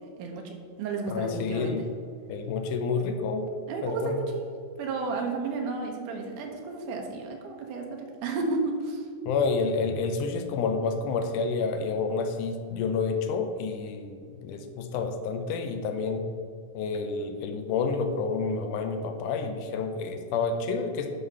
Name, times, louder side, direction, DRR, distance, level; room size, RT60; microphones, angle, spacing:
voice 1, 0.2-1.9 3.7-4.5 4.8-9.1, right 3 dB, 85° right, 2 dB, 2.6 m, -32 dB
voice 2, 1.1-1.8 2.3-3.5 3.8-4.2 9.3-16.3 16.8-21.1, left 4 dB, 90° left, 6 dB, 2.2 m, -29 dB
11.0 x 4.0 x 5.5 m, 2.2 s
omnidirectional pair, 3.6 m